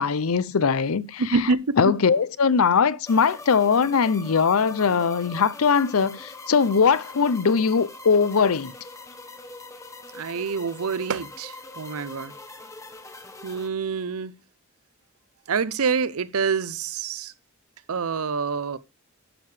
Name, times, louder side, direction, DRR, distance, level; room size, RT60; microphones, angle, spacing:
voice 1, 0.0-1.2 1.8-8.7, left 5 dB, 80° left, 0.6 m, -21 dB
voice 2, 1.2-2.0 10.1-12.3 13.4-14.3 15.5-17.3 17.9-18.8, right 5 dB, 85° right, 0.7 m, -26 dB
sound 1, 3.1-13.7, left 2 dB, 15° left, 0.9 m, -42 dB
12.0 x 6.6 x 3.3 m
head